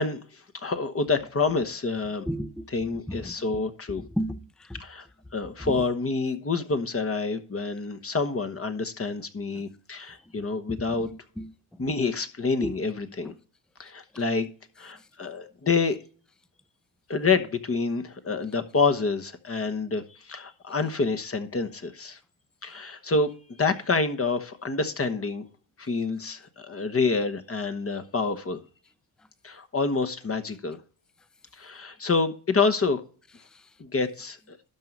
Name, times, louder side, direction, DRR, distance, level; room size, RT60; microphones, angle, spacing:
voice 1, 0.0-2.3 2.7-4.0 4.8-5.1 5.3-11.1 11.8-13.3 13.8-14.5 14.8-16.0 17.1-22.2 22.6-23.3 23.6-25.5 25.8-28.6 29.4-30.8 31.5-33.0 33.8-34.6, left 4 dB, 30° left, 1.1 m, -27 dB
voice 2, 2.3-2.7 3.2-3.6 4.0-4.4 5.7-5.8 10.7-11.5 12.6-12.7, equal, ahead, 0.5 m, -33 dB
12.5 x 4.7 x 5.4 m
cardioid pair, 90°, 49 cm